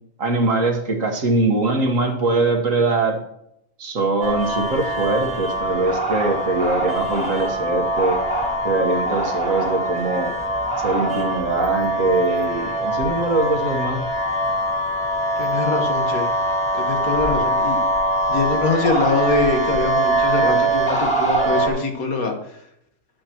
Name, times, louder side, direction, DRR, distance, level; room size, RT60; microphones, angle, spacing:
voice 1, 0.2-3.2 3.8-8.2 8.6-10.4 10.8-14.0, right 2 dB, 65° right, 3 dB, 1.8 m, -22 dB
sound 1, 4.2-21.7, right 1 dB, 5° left, 1.7 m, -23 dB
voice 2, 15.4-16.3 16.7-17.8 18.3-22.3, left 4 dB, 80° left, 3 dB, 1.9 m, -23 dB
10.5 x 9.4 x 3.0 m, 0.76 s
omnidirectional pair, 1.5 m